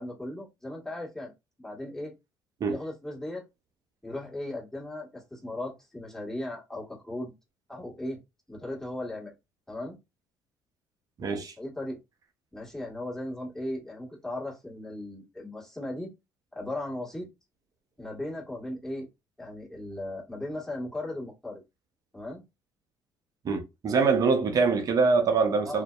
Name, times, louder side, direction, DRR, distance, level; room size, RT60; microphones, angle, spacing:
voice 1, 0.0-1.3 1.6-2.1 2.7-3.4 4.0-7.3 7.7-8.2 8.5-9.3 9.7-10.0 11.6-12.0 12.5-16.1 16.5-17.3 18.0-19.1 19.4-21.6 22.1-22.4 25.6-25.8, left 1 dB, 5° left, 1.4 m, -37 dB
voice 2, 11.2-11.5 23.4-25.8, right 4 dB, 50° right, 0.7 m, -24 dB
2.5 x 2.1 x 2.3 m
supercardioid pair, 70°, 8 cm